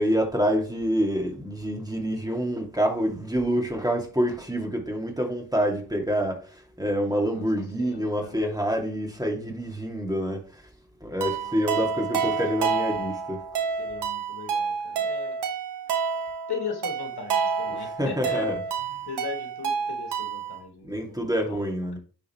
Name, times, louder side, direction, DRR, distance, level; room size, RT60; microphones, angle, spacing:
voice 1, 0.0-10.6 11.0-13.4 17.7-18.6 20.8-22.0, equal, 10° right, 2.4 m, -27 dB
voice 2, 7.8-8.4 11.4-11.5 11.9-12.0 12.3-12.4 12.7-12.9 13.8-15.4 16.1-16.2 16.5-18.6 19.0-22.0, left 6 dB, 75° left, 1.4 m, -38 dB
sound 1, 11.2-20.6, right 6 dB, 85° right, 1.2 m, -29 dB
10.0 x 3.9 x 3.1 m
supercardioid pair, 40°, 40 cm